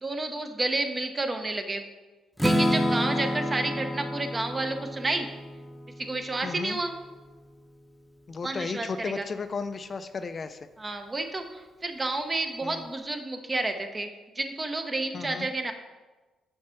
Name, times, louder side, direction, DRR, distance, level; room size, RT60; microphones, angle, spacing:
voice 1, 0.0-1.8 2.4-5.3 6.0-6.9 8.4-9.2 10.8-11.4 11.8-14.1 14.4-15.7, right 2 dB, 25° right, 6 dB, 0.8 m, -30 dB
Strum, 2.4-6.3, equal, 5° left, 0.9 m, -29 dB
voice 2, 6.4-6.8 8.3-10.6 12.6-12.9 15.1-15.5, left 4 dB, 40° left, 10 dB, 0.4 m, -34 dB
6.5 x 4.4 x 5.7 m, 1.3 s
cardioid pair, 90°, 0 cm